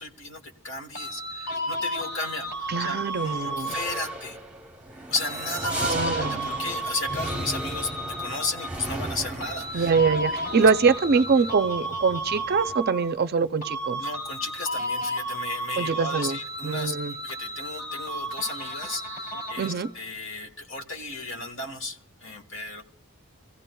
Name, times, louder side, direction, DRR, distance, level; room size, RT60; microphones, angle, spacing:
voice 1, 0.0-4.4 5.1-10.2 10.5-10.7 11.1-11.5 14.0-22.8, left 3 dB, 60° left, 1.3 m, -34 dB
sound 1, 0.9-4.3 5.1-8.9 9.4-13.3 13.6-19.9, equal, 40° left, 3.0 m, -33 dB
voice 2, 2.7-3.7 5.8-6.5 9.7-14.0 15.8-16.4 16.6-17.1 19.6-19.9, right 5 dB, 45° right, 0.4 m, -24 dB
sound 2, 3.0-12.7, right 2 dB, 5° right, 0.8 m, -37 dB
26.0 x 15.5 x 2.3 m
head